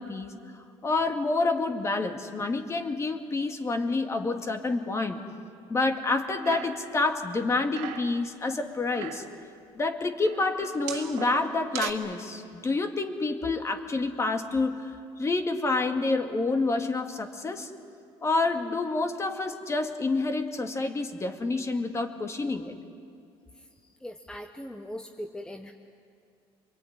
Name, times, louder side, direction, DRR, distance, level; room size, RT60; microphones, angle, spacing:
voice 1, 0.0-5.2 5.7-9.2 9.7-14.9 15.2-17.7 18.2-22.8, left 3 dB, 25° left, 6 dB, 2.3 m, -28 dB
sound 1, 6.1-7.0 7.3-8.2 8.7-9.4 10.2-11.9, right 10 dB, 80° right, 2.1 m, -39 dB
voice 2, 24.0-25.7, equal, 5° left, 4 dB, 1.3 m, -40 dB
26.0 x 22.5 x 9.8 m, 2.5 s
cardioid pair, 100°, 11 cm